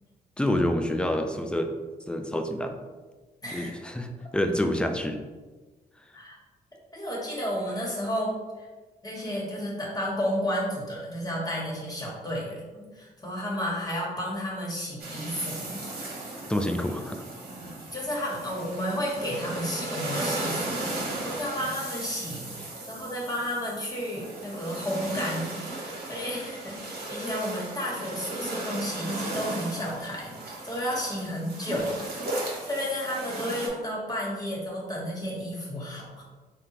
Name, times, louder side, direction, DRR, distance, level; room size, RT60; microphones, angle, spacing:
voice 1, 0.4-1.7 2.1-2.8 3.5-4.1 4.3-5.2 16.5-17.2, left 1 dB, 5° left, 5 dB, 0.3 m, -27 dB
voice 2, 3.4-3.7 6.1-6.4 6.9-8.7 9.0-15.8 17.9-20.9 21.2-36.2, equal, 20° left, -4 dB, 1.3 m, -32 dB
sound 1, 15.0-33.7, right 2 dB, 60° right, 1.0 m, -36 dB
3.4 x 2.2 x 2.9 m, 1.3 s
supercardioid pair, 60°, 18 cm